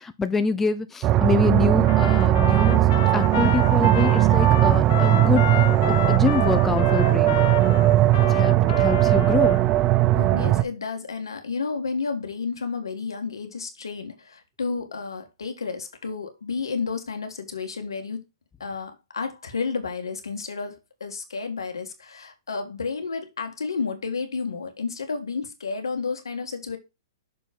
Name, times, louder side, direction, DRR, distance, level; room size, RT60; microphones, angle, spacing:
voice 1, 0.0-2.9 3.1-5.4 5.9-7.4 8.3-9.6, left 5 dB, 10° left, 0.6 m, -26 dB
sound 1, 1.0-10.6, right 14 dB, 30° right, 0.6 m, -19 dB
Trumpet, 1.8-9.6, left 12 dB, 55° left, 0.8 m, -31 dB
voice 2, 10.1-18.2 18.6-26.8, left 4 dB, 90° left, 1.7 m, -31 dB
6.6 x 4.3 x 5.2 m
hypercardioid pair, 130°, 2 cm